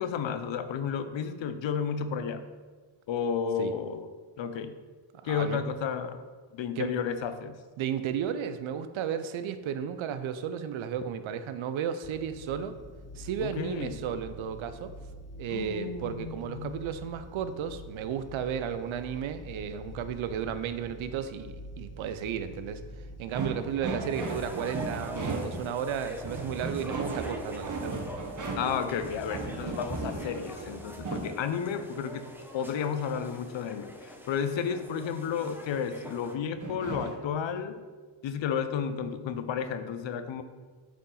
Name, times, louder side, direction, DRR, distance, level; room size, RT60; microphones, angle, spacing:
voice 1, 0.0-2.4 3.1-4.1 4.4-4.8 5.2-6.2 6.5-7.6 13.4-14.0 15.5-16.8 28.6-32.3 32.5-37.8 38.2-40.4, left 7 dB, 65° left, 10 dB, 0.7 m, -32 dB
voice 2, 5.2-5.6 6.8-6.9 7.8-12.8 13.2-14.9 15.4-22.8 23.2-27.9, right 8 dB, 70° right, 11 dB, 0.7 m, -33 dB
sound 1, 12.0-30.2, left 2 dB, 35° left, 0.5 m, -47 dB
sound 2, 23.3-25.7 26.2-31.3 36.6-37.2, right 3 dB, 35° right, 1.2 m, -36 dB
sound 3, 24.0-36.4, equal, 5° right, 0.8 m, -45 dB
8.1 x 4.3 x 3.9 m, 1.4 s
cardioid pair, 75°, 50 cm